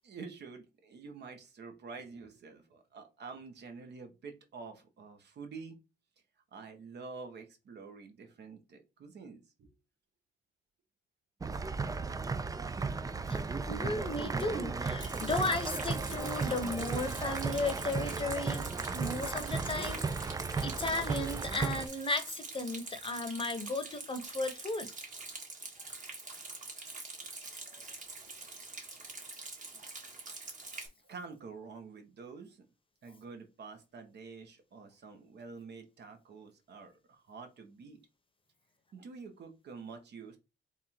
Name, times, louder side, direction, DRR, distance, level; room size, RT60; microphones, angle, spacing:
voice 1, 0.0-5.8 6.5-9.7 28.3-28.4 31.0-32.7 33.0-38.0 38.9-40.4, right 4 dB, 60° right, 1.2 m, -48 dB
sound 1, 11.4-21.9, right 4 dB, 20° right, 0.4 m, -35 dB
voice 2, 13.7-18.7 18.9-20.0 20.6-24.9, left 2 dB, 25° left, 0.8 m, -35 dB
Rain, 15.0-30.9, right 3 dB, 40° right, 1.6 m, -45 dB
3.5 x 2.4 x 4.3 m
cardioid pair, 90°, 20 cm